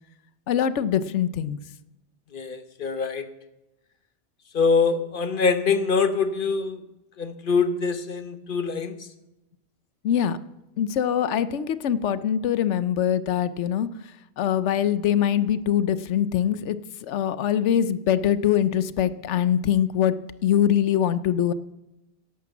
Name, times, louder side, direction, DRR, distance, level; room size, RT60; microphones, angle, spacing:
voice 1, 0.5-1.6 10.0-10.4 10.8-20.1 20.4-21.5, left 9 dB, 90° left, 15 dB, 1.0 m, -23 dB
voice 2, 2.3-3.2 4.5-6.8 7.2-8.9, left 5 dB, 50° left, 11 dB, 1.1 m, -24 dB
12.0 x 11.0 x 7.1 m, 0.93 s
omnidirectional pair, 1.2 m